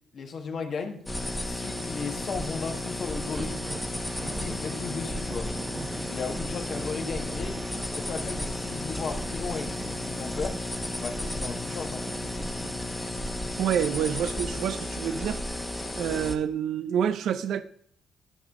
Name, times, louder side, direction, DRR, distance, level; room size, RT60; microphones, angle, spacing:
voice 1, 0.1-1.0 1.4-3.6 4.2-5.5 6.1-7.6 7.9-10.6 11.0-12.0, left 5 dB, 55° left, 1.5 m, -35 dB
sound 1, 1.0-15.5 15.9-16.0, right 4 dB, 35° right, 0.9 m, -45 dB
sound 2, 1.1-16.3, left 1 dB, 15° left, 1.2 m, -33 dB
voice 2, 13.6-15.4 15.9-17.6, right 8 dB, 75° right, 0.5 m, -27 dB
12.5 x 5.2 x 3.7 m
cardioid pair, 90°, 0 cm